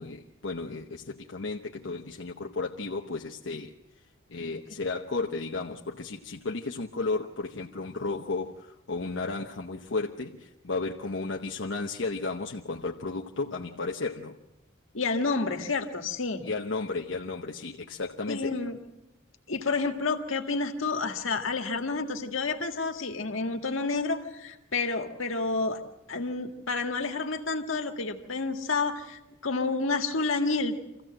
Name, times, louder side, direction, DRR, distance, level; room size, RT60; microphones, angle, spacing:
voice 1, 0.0-3.7 4.3-14.4 16.4-18.5, left 3 dB, 70° left, 0 dB, 0.9 m, -33 dB
voice 2, 14.9-16.4 18.3-18.8 19.5-25.8 26.1-31.0, left 3 dB, 85° left, 5 dB, 1.8 m, -29 dB
25.0 x 15.5 x 7.6 m, 0.97 s
head